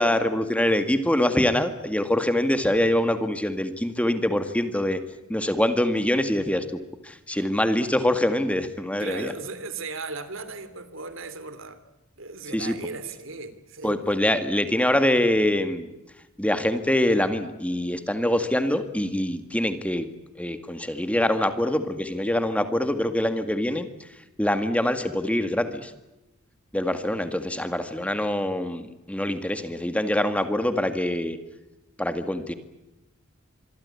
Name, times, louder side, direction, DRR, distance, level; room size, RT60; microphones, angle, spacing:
voice 1, 0.0-5.0 5.3-6.6 7.0-9.3 12.5-12.8 13.8-15.9 16.4-20.1 20.4-23.9 24.4-25.9 26.7-31.4 32.0-32.5, left 1 dB, 5° left, 9 dB, 1.9 m, -24 dB
voice 2, 9.0-11.8 12.2-14.0, right 4 dB, 65° right, 13 dB, 3.2 m, -37 dB
26.5 x 23.0 x 8.5 m, 0.98 s
head